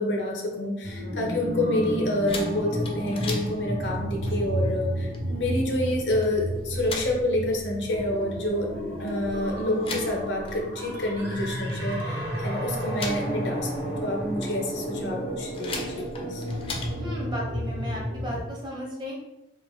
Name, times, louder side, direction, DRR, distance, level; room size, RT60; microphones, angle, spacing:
voice 1, 0.0-16.4, left 1 dB, 85° left, 1 dB, 0.6 m, -28 dB
sound 1, 0.8-18.4, equal, 65° right, 0.9 m, -32 dB
sound 2, 2.3-17.0, left 3 dB, 30° left, 0.3 m, -41 dB
voice 2, 17.0-19.1, left 1 dB, 25° right, -3 dB, 0.7 m, -35 dB
2.9 x 2.2 x 2.6 m, 0.94 s
head